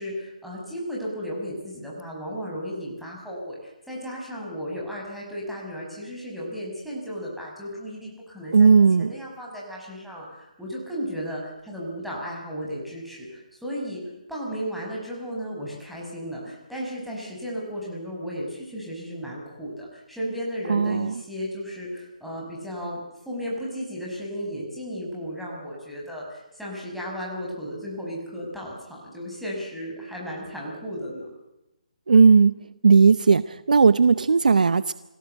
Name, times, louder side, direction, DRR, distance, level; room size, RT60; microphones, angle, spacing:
voice 1, 0.0-14.0 14.3-31.3, equal, ahead, -5 dB, 5.7 m, -34 dB
voice 2, 8.5-9.1 20.7-21.1 32.1-32.5 32.8-34.9, right 5 dB, 75° right, 16 dB, 0.7 m, -16 dB
24.5 x 17.0 x 7.9 m, 0.95 s
hypercardioid pair, 155°, 4 cm